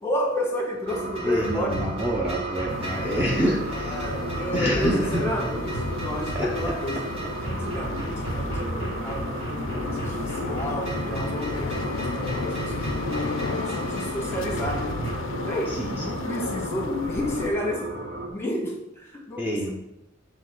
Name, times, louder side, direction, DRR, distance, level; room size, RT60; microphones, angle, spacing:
voice 1, 0.0-1.8 2.0-2.1 3.9-7.1 7.4-13.3 13.7-14.9 15.4-19.7, equal, 10° left, 0 dB, 1.4 m, -31 dB
sound 1, 0.9-15.2, right 1 dB, 30° right, 2.1 m, -35 dB
sound 2, 0.9-18.3, right 2 dB, 55° right, 1.0 m, -35 dB
voice 2, 1.2-4.1 4.5-5.3 6.3-6.8 15.7-16.2 19.4-19.7, equal, 10° right, -3 dB, 0.7 m, -27 dB
sound 3, 2.7-17.5, left 4 dB, 70° left, 0.4 m, -34 dB
7.3 x 3.1 x 6.0 m, 0.93 s
head